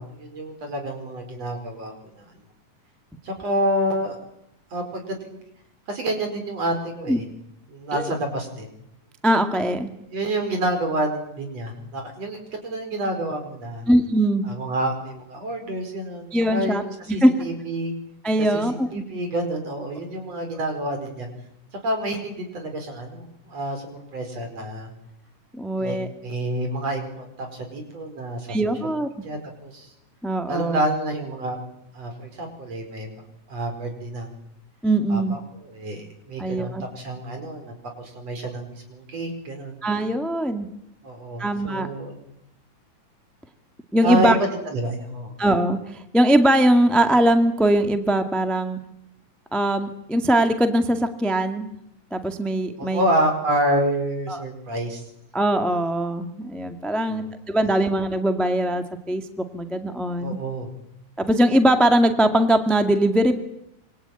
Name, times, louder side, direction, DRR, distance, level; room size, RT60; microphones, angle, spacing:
voice 1, 0.0-2.3 3.2-4.2 4.7-5.4 5.9-7.2 7.7-8.7 10.1-13.9 14.5-17.9 18.4-18.6 18.9-21.3 21.8-24.9 25.8-28.6 28.8-28.9 29.2-29.9 30.5-31.6 31.9-33.2 33.5-34.3 35.1-35.4 35.7-39.8 41.0-42.1 44.0-45.3 52.8-55.0 57.1-57.3 60.2-60.7, right 1 dB, 60° right, 5 dB, 6.0 m, -28 dB
voice 2, 9.2-9.9 13.9-14.5 16.3-16.8 17.2-17.3 18.2-19.0 25.5-26.1 28.5-29.1 30.2-30.8 34.8-35.3 36.4-36.8 39.8-40.7 41.4-41.9 43.9-44.4 45.4-48.8 49.5-51.7 52.1-53.0 54.3-54.4 55.3-59.2 59.5-60.4 61.2-63.4, right 1 dB, ahead, 7 dB, 1.3 m, -21 dB
26.0 x 24.5 x 9.1 m, 0.81 s
omnidirectional pair, 3.3 m